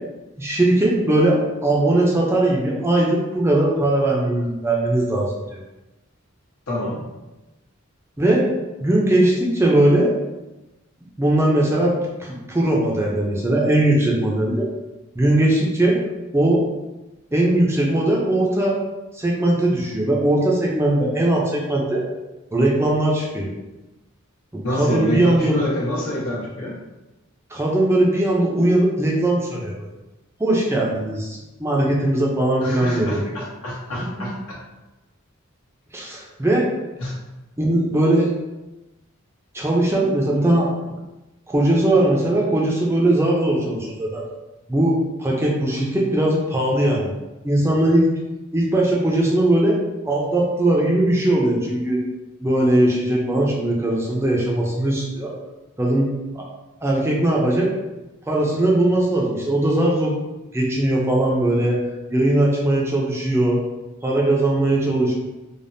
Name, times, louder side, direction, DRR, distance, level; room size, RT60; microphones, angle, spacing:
voice 1, 0.4-5.6 8.2-8.4 8.8-10.1 11.2-11.9 12.2-14.7 15.2-16.0 16.3-16.6 17.3-18.8 19.1-22.1 22.5-23.5 24.5-25.6 27.5-29.9 30.4-33.3 34.2-34.3 35.9-36.6 37.6-38.3 39.5-40.9 41.5-44.2 44.7-47.1 47.4-48.1 48.5-49.8 50.1-52.0 52.4-55.3 55.8-56.1 56.3-56.5 56.8-57.7 58.3-60.1 60.5-61.8 62.1-63.6 64.0-65.1, right 1 dB, 10° right, -3 dB, 0.4 m, -19 dB
voice 2, 6.7-7.0 24.6-26.8 32.6-34.3 37.0-37.2, left 1 dB, 85° left, -5 dB, 1.0 m, -26 dB
3.3 x 2.0 x 2.6 m, 1.0 s
head